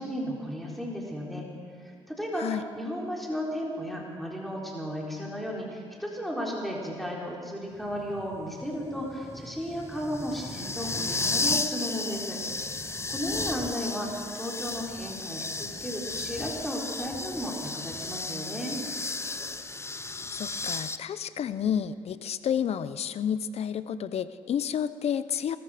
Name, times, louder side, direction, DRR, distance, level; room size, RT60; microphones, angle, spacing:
voice 1, 0.0-1.5 1.8-12.4 12.8-18.8, equal, ahead, -3 dB, 4.0 m, -34 dB
sound 1, 7.8-21.0, left 3 dB, 25° left, 0.9 m, -34 dB
voice 2, 20.3-25.6, left 8 dB, 65° left, 14 dB, 0.7 m, -30 dB
20.0 x 14.0 x 5.1 m, 2.4 s
supercardioid pair, 60°, 11 cm